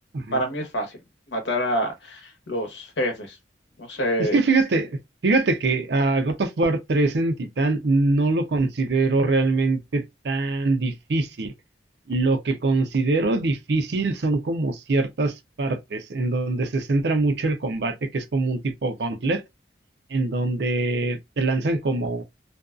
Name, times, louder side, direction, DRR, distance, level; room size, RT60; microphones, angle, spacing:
voice 1, 0.3-1.0 1.3-3.4 3.8-4.4, equal, 80° left, 0.9 m, -27 dB
voice 2, 4.2-11.5 12.1-19.4 20.1-22.2, right 3 dB, 70° right, 0.5 m, -23 dB
2.6 x 2.3 x 2.3 m
head